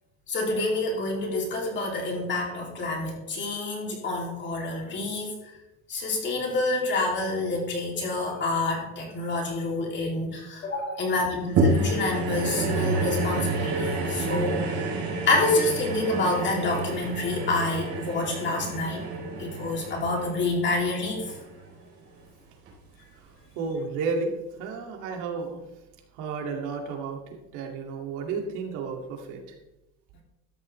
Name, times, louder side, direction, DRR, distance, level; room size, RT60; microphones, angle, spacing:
voice 1, 0.3-5.3 5.9-14.8 15.3-19.0 19.4-21.2, left 2 dB, 35° left, 0 dB, 2.8 m, -28 dB
sound 1, 11.6-22.0 22.7-22.8, right 2 dB, 50° right, 3.9 m, -29 dB
voice 2, 23.5-24.3 24.6-25.6 26.1-27.2 27.5-29.4, right 4 dB, 75° right, 2 dB, 2.4 m, -32 dB
13.0 x 10.5 x 3.3 m, 0.96 s
cardioid pair, 155°, 31 cm